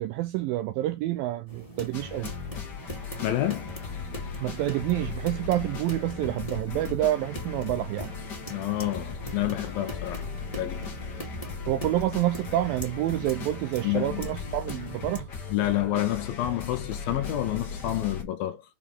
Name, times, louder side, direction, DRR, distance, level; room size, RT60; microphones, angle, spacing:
voice 1, 0.0-2.3 4.4-8.1 11.7-15.3, right 14 dB, 80° right, 2.1 m, -28 dB
sound 1, 1.5-15.2, right 1 dB, 15° left, 1.3 m, -43 dB
sound 2, 1.9-18.2, left 5 dB, 60° left, 1.1 m, -38 dB
voice 2, 3.2-3.7 8.5-10.3 10.6-10.9 13.8-14.3 15.5-18.6, left 14 dB, 75° left, 2.4 m, -28 dB
7.0 x 4.6 x 5.3 m
omnidirectional pair, 4.6 m